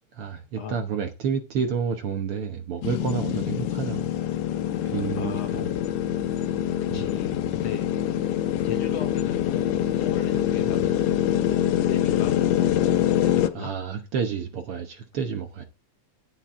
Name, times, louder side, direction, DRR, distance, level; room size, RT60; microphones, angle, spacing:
voice 1, 0.1-4.1 4.8-5.6 6.9-7.0 10.6-10.9 13.5-15.6, right 6 dB, 60° right, 1.6 m, -30 dB
sound 1, 2.8-13.5, left 11 dB, 85° left, 2.3 m, -25 dB
voice 2, 5.1-5.7 6.9-7.9 8.6-12.9 13.2-13.7, left 9 dB, 70° left, 1.6 m, -38 dB
10.0 x 9.8 x 3.7 m
omnidirectional pair, 3.5 m